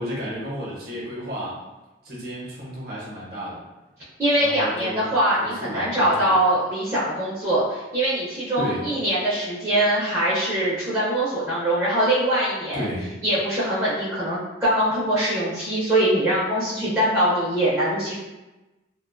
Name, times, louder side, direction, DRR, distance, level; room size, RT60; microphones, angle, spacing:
voice 1, 0.0-1.6 2.0-3.6 4.4-5.1 5.4-6.3 8.6-8.9 12.7-13.1, equal, 55° right, -6 dB, 0.7 m, -32 dB
voice 2, 4.2-12.9 13.2-18.2, right 1 dB, 15° right, -11 dB, 0.5 m, -22 dB
2.4 x 2.2 x 2.4 m, 1.1 s
head